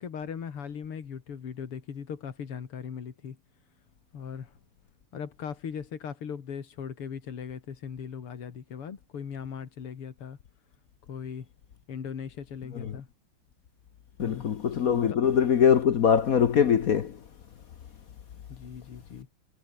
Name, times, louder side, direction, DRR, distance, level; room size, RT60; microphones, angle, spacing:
voice 1, 0.0-3.4 4.1-4.6 5.1-10.4 11.1-11.5 11.9-13.1 14.2-14.5 15.1-15.2 18.5-19.3, left 7 dB, 90° left, 3.1 m, -39 dB
voice 2, 14.2-17.2, left 8 dB, 55° left, 1.1 m, -22 dB
omnidirectional pair, 2.4 m